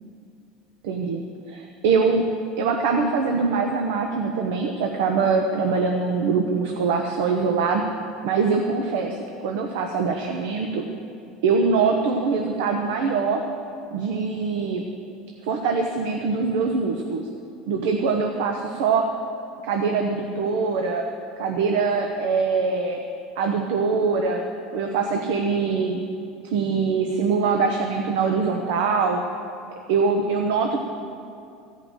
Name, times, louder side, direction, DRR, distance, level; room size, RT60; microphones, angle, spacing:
voice 1, 0.8-1.2 1.5-2.2 2.6-7.8 8.2-10.8 11.4-13.4 13.9-14.8 15.4-17.3 17.7-19.1 19.6-21.0 21.4-23.0 23.4-24.4 24.7-26.0 26.5-29.2 29.9-30.8, right 4 dB, 80° right, 3 dB, 1.0 m, -23 dB
15.5 x 5.8 x 8.9 m, 2.4 s
cardioid pair, 170°, 0 cm